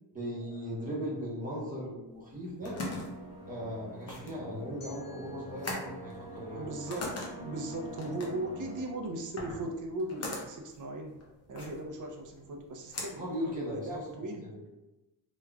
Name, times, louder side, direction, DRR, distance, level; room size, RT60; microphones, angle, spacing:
voice 1, 0.1-2.7 3.5-6.7 13.1-14.0 14.4-14.6, equal, 20° right, -6 dB, 1.0 m, -38 dB
sound 1, 2.2-14.1, left 2 dB, 40° left, 0.7 m, -42 dB
sound 2, 2.6-8.8, right 1 dB, 60° left, 0.9 m, -46 dB
sound 3, 4.8-7.7, left 2 dB, 85° left, 1.2 m, -58 dB
voice 2, 6.5-11.2 11.5-14.4, right 1 dB, 50° right, 1 dB, 0.6 m, -38 dB
3.5 x 3.0 x 2.3 m, 1.0 s
wide cardioid pair, 170°, 40 cm